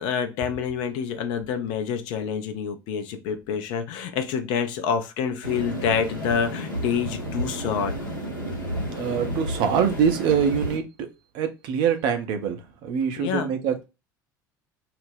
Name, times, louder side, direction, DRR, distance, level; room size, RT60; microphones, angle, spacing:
voice 1, 0.0-8.0 13.2-13.5, left 7 dB, 50° left, 0.5 m, -27 dB
sound 1, 5.4-10.8, equal, 90° left, 0.8 m, -31 dB
voice 2, 9.0-11.1 11.3-13.9, right 7 dB, 50° right, 0.5 m, -24 dB
2.4 x 2.0 x 3.3 m
figure-of-eight pair, 65°, 11 cm